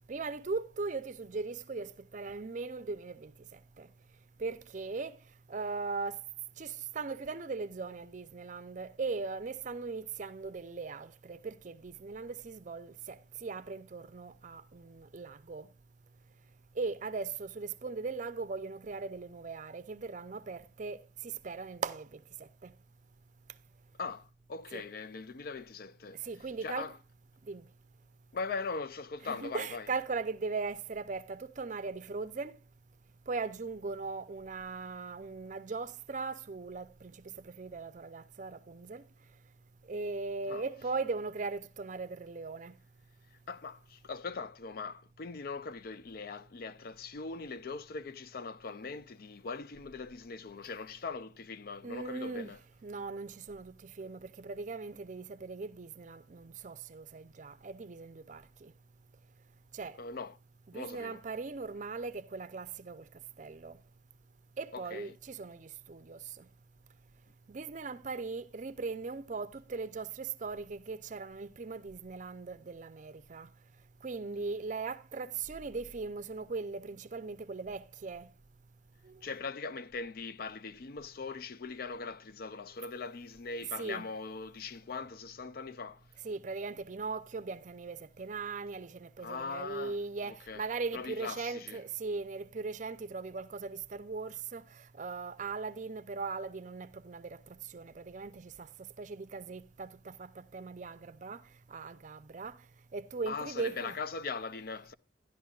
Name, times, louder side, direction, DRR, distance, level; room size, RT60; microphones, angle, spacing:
voice 1, 0.1-3.9 4.4-5.2 5.5-6.2 6.6-15.7 16.8-22.2 22.6-22.7 24.7-24.8 26.2-26.9 27.4-27.7 29.2-32.6 33.3-39.0 39.9-42.8 51.8-52.6 52.8-58.7 59.7-60.0 60.7-63.0 63.4-63.8 64.6-66.5 67.5-73.5 74.0-78.3 79.0-79.2 83.8-84.1 86.2-101.4 101.7-102.6 102.9-104.0, right 4 dB, 40° right, 0.5 m, -39 dB
voice 2, 24.0-26.2 26.6-27.0 28.3-29.9 40.5-40.6 43.5-52.6 60.0-60.4 60.7-61.2 64.7-65.2 79.2-86.0 89.2-90.0 90.3-90.6 90.9-91.8 103.3-104.9, left 4 dB, 50° left, 0.4 m, -41 dB
13.0 x 11.0 x 2.4 m
head